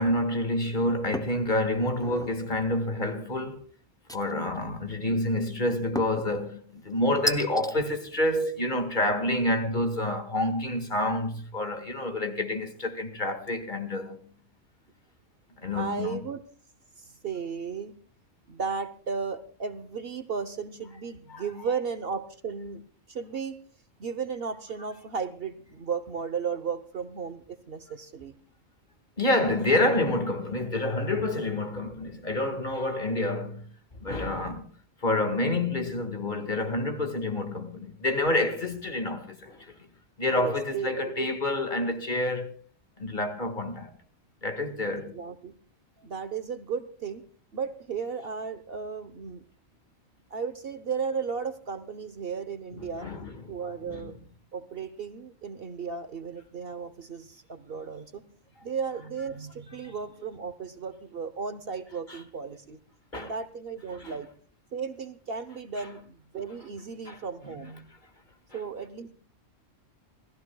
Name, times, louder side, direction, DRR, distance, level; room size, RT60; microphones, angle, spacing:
voice 1, 0.0-3.6 4.1-14.3 15.6-16.2 21.3-21.4 29.2-33.7 34.0-34.7 35.0-39.7 40.2-42.5 43.0-43.9 44.4-45.2 52.8-53.5 53.8-54.2 62.1-62.2 63.1-63.3 64.0-64.2 67.1-67.2 67.5-67.7, left 1 dB, 40° left, 1.8 m, -28 dB
sound 1, 1.1-1.4 1.9-2.4 4.1-4.6 6.0-6.3 7.3-7.7, equal, 5° left, 0.3 m, -33 dB
voice 2, 15.7-16.4 17.0-17.9 18.5-22.8 23.1-23.6 24.0-28.3 40.3-41.3 45.1-45.5 46.0-47.2 47.5-49.4 50.3-53.1 53.5-54.2 54.5-58.2 58.6-62.8 63.1-64.3 64.7-67.7 68.5-69.1, right 6 dB, 55° right, 1.0 m, -35 dB
28.5 x 14.0 x 2.3 m
omnidirectional pair, 1.3 m